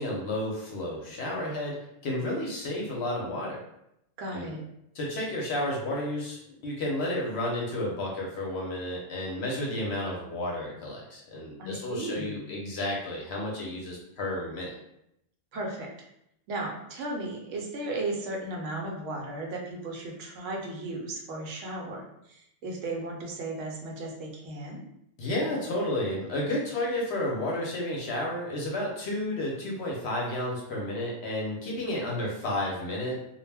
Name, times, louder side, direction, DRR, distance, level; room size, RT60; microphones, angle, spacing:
voice 1, 0.0-1.8 2.0-3.6 4.3-4.5 4.9-14.7 25.2-33.2, left 1 dB, 65° left, -2 dB, 0.8 m, -31 dB
voice 2, 4.2-4.6 11.6-12.4 15.5-15.9 16.5-24.8, right 2 dB, 75° right, 0 dB, 0.9 m, -35 dB
2.3 x 2.0 x 3.3 m, 0.80 s
omnidirectional pair, 1.3 m